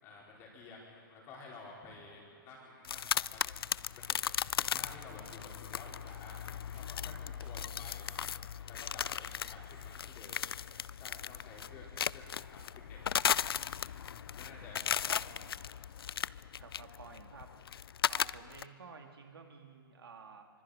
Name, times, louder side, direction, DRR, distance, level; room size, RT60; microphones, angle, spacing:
voice 1, 0.0-3.6 3.9-4.2 4.5-6.4 6.7-8.1 8.7-10.4 11.0-13.0 13.9-15.4, left 3 dB, 20° left, -3 dB, 4.3 m, -52 dB
sound 1, 2.8-18.6, left 8 dB, 80° left, 0.4 m, -37 dB
sound 2, 4.4-9.7, right 4 dB, 10° right, 1.2 m, -63 dB
voice 2, 16.6-17.5 17.8-20.5, right 5 dB, 90° right, 4 dB, 2.5 m, -52 dB
25.5 x 24.5 x 5.0 m, 2.7 s
hypercardioid pair, 165°, 12 cm